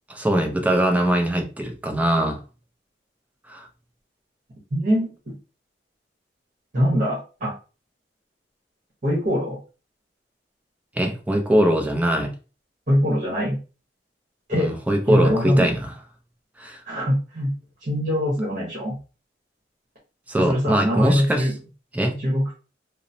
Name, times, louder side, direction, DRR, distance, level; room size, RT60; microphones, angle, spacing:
voice 1, 0.1-2.4 3.5-3.7 11.0-12.3 14.5-15.9 16.6-16.8 20.3-21.5 21.9-22.2, right 1 dB, 10° right, 2 dB, 0.5 m, -22 dB
voice 2, 4.7-5.3 6.7-7.5 9.0-9.6 12.9-13.6 14.5-14.7 15.1-15.7 16.9-17.5 17.8-19.0 20.5-21.5 22.2-22.6, equal, 50° right, -5 dB, 1.1 m, -22 dB
2.9 x 2.0 x 2.6 m, 0.33 s
head